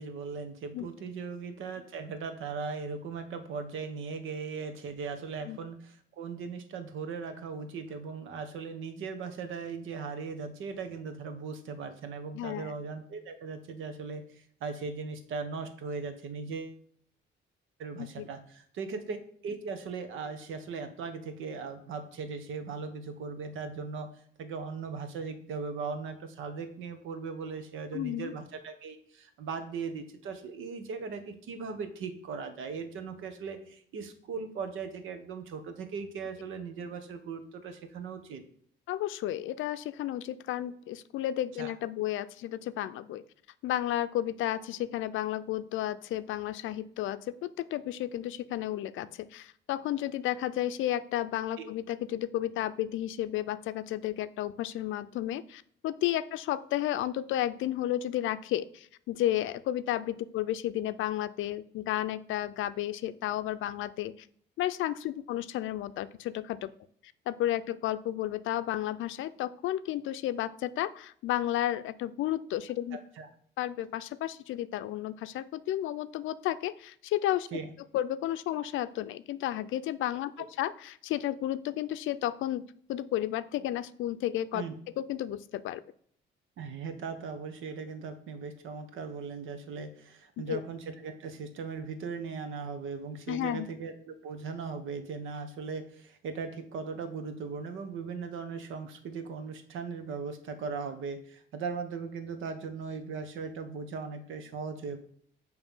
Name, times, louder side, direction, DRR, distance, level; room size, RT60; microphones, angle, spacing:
voice 1, 0.0-16.8 17.8-38.4 41.6-41.7 51.6-51.7 72.9-73.3 77.5-77.7 80.4-80.5 84.5-84.7 86.6-105.0, right 5 dB, 80° right, 7 dB, 1.1 m, -38 dB
voice 2, 12.3-12.7 18.0-18.3 27.9-28.3 38.9-43.2 43.6-64.3 64.6-66.7 67.3-73.0 73.6-77.5 77.9-84.6 85.0-85.8 90.4-90.6 93.3-93.7, left 13 dB, 80° left, 14 dB, 0.5 m, -32 dB
7.1 x 3.2 x 5.5 m, 0.63 s
cardioid pair, 90°, 20 cm